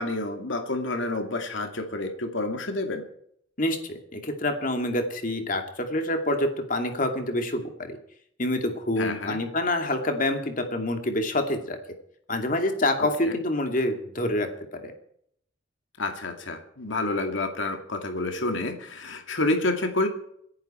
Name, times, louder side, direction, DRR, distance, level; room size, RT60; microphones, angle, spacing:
voice 1, 0.0-3.0 9.0-9.4 13.0-13.3 16.0-20.1, left 2 dB, 75° left, 5 dB, 2.3 m, -29 dB
voice 2, 3.6-8.0 8.4-11.8 12.3-14.5 14.7-14.9, left 1 dB, 45° left, 5 dB, 2.5 m, -27 dB
27.0 x 10.5 x 4.4 m, 0.69 s
head